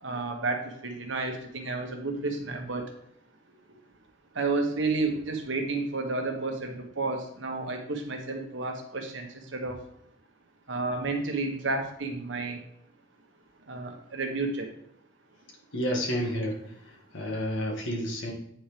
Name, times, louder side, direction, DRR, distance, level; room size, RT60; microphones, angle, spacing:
voice 1, 0.0-2.8 4.3-9.8 10.7-12.6 13.7-14.7, right 3 dB, 75° right, 3 dB, 1.5 m, -31 dB
voice 2, 15.7-16.6 17.1-18.3, equal, 75° left, -1 dB, 2.0 m, -30 dB
9.1 x 4.5 x 5.2 m, 0.73 s
head